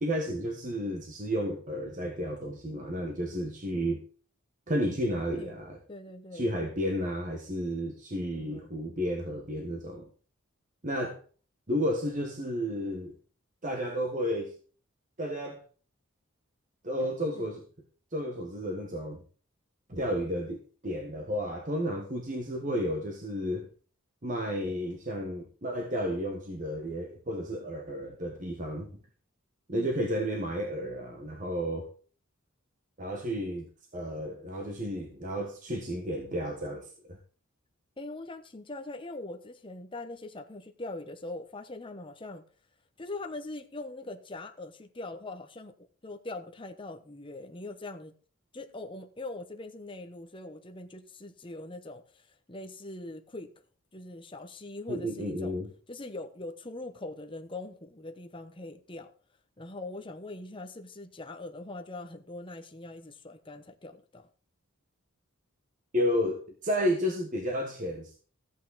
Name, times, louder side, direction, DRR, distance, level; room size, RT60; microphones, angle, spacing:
voice 1, 0.0-4.0 4.7-5.8 6.3-10.1 10.8-11.2 11.7-13.1 13.6-14.5 15.2-15.6 16.8-17.6 18.1-19.2 19.9-20.6 20.8-23.7 24.2-28.9 29.7-31.9 33.0-37.2 54.9-55.7 65.9-68.1, equal, 40° right, 1.4 m, -32 dB
voice 2, 5.9-6.5 8.3-8.7 17.3-17.5 29.7-29.9 35.9-36.0 38.0-42.4 43.0-45.7 46.0-48.1 48.5-53.5 53.9-55.6 55.9-59.1 59.6-64.3, left 2 dB, 25° left, 1.0 m, -42 dB
14.5 x 8.4 x 4.1 m
head